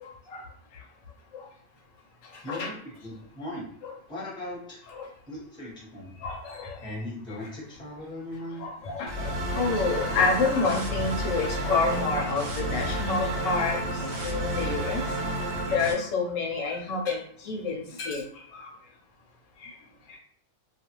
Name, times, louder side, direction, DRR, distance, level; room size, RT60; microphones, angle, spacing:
voice 1, 0.0-0.4 2.5-2.7 4.9-5.1 6.2-6.7 8.6-9.3 9.6-15.0 15.7-18.2 18.5-18.7 19.6-19.7, left 4 dB, 80° left, 1 dB, 1.0 m, -28 dB
voice 2, 2.4-3.7 4.1-4.8 5.3-6.2 6.8-8.7, left 1 dB, 5° left, -5 dB, 0.8 m, -38 dB
sound 1, 9.1-15.9, right 1 dB, 60° right, 0.8 m, -31 dB
2.4 x 2.3 x 2.9 m, 0.63 s
omnidirectional pair, 1.3 m